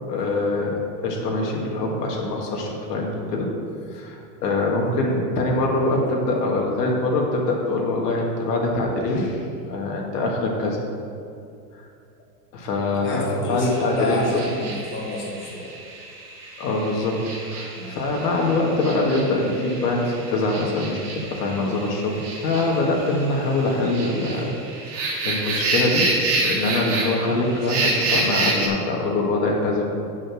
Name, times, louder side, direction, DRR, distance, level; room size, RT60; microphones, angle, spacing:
voice 1, 0.1-3.5 3.9-10.8 12.5-14.4 16.6-24.6 24.9-29.9, left 2 dB, 75° left, -1 dB, 2.0 m, -24 dB
voice 2, 13.0-15.7 17.7-18.0, left 2 dB, 25° left, -3 dB, 1.6 m, -29 dB
sound 1, 13.6-28.7, right 2 dB, 65° right, 2.2 m, -29 dB
7.1 x 6.5 x 6.3 m, 2.5 s
supercardioid pair, 145°, 49 cm